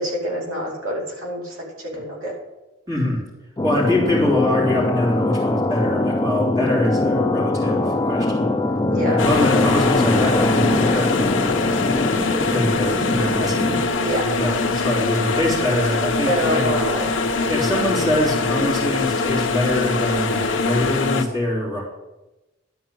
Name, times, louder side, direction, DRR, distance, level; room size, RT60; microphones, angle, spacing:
voice 1, 0.0-2.3 8.9-9.2 14.0-14.3 16.2-17.1, equal, 75° right, -3 dB, 2.6 m, -26 dB
voice 2, 2.9-3.2 3.6-8.6 9.1-11.3 12.5-13.8 14.4-16.6 17.5-21.8, left 1 dB, 15° right, -5 dB, 3.2 m, -23 dB
sound 1, 3.6-13.9, left 2 dB, 15° left, 0.5 m, -22 dB
sound 2, 9.2-21.2, left 3 dB, 60° left, 0.9 m, -22 dB
12.0 x 4.6 x 7.7 m, 1.0 s
head